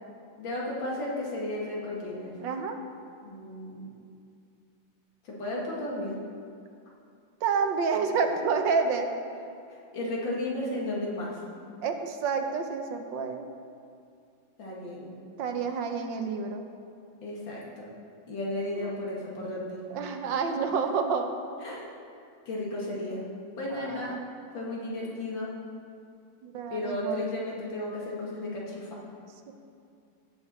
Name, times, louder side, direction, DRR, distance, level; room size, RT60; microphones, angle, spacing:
voice 1, 0.4-2.3 3.2-3.9 5.2-6.1 8.5-8.6 9.9-11.4 14.6-15.1 17.2-17.9 18.3-19.8 21.6-21.9 22.5-23.2 23.6-24.2 24.5-25.5 26.7-29.0, left 1 dB, 85° left, -4 dB, 2.7 m, -34 dB
voice 2, 2.4-2.8 7.4-9.1 11.8-13.5 15.4-16.7 18.7-19.0 19.9-21.3 23.7-24.2 26.4-27.3 29.5-29.6, right 5 dB, 80° right, 5 dB, 1.5 m, -29 dB
16.5 x 6.6 x 4.3 m, 2.4 s
omnidirectional pair, 2.0 m